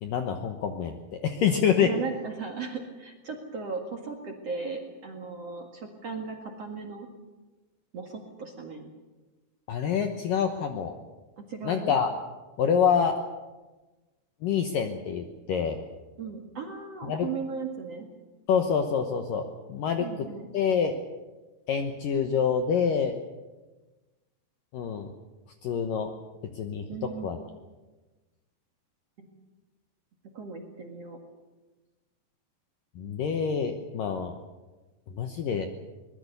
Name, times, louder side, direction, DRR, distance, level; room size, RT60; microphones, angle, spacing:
voice 1, 0.0-1.9 9.7-10.9 11.6-12.1 12.6-13.2 14.4-15.8 17.1-17.3 18.5-20.3 20.5-21.0 21.7-23.1 24.7-25.1 25.6-26.1 26.6-26.9 27.2-27.4 33.0-34.3 35.1-35.7, left 7 dB, 70° left, 5 dB, 2.1 m, -26 dB
voice 2, 1.8-7.1 7.9-8.9 11.4-11.9 16.2-18.1 20.0-20.5 26.9-27.5 29.2-29.3 30.3-31.2, right 5 dB, 50° right, 2 dB, 2.1 m, -37 dB
23.0 x 20.5 x 6.9 m, 1.2 s
omnidirectional pair, 5.3 m